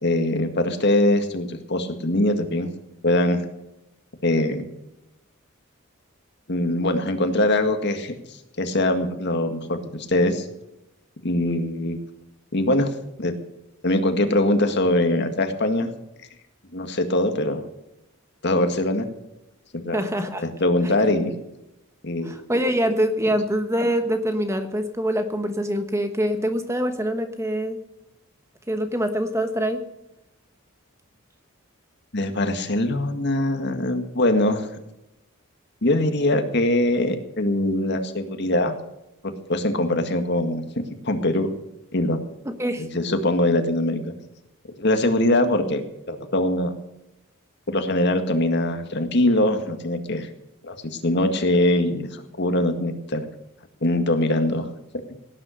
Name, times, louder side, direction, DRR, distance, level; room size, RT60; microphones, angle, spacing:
voice 1, 0.0-2.7 3.0-3.4 4.2-4.6 6.5-8.2 8.6-9.8 10.1-10.5 11.2-12.0 12.5-12.9 13.2-13.3 13.8-15.9 16.7-17.6 18.4-19.1 19.7-20.0 20.4-21.3 22.0-22.4 32.1-34.7 35.8-38.8 39.2-41.5 41.9-42.2 42.8-44.1 44.8-45.8 46.1-46.7 47.7-50.3 50.6-53.2 53.8-54.7, left 1 dB, 55° left, 7 dB, 1.9 m, -22 dB
voice 2, 19.9-20.4 21.0-21.1 22.2-27.8 28.7-29.8 42.4-42.8, equal, 15° right, 7 dB, 1.2 m, -24 dB
17.5 x 9.8 x 6.5 m, 0.89 s
head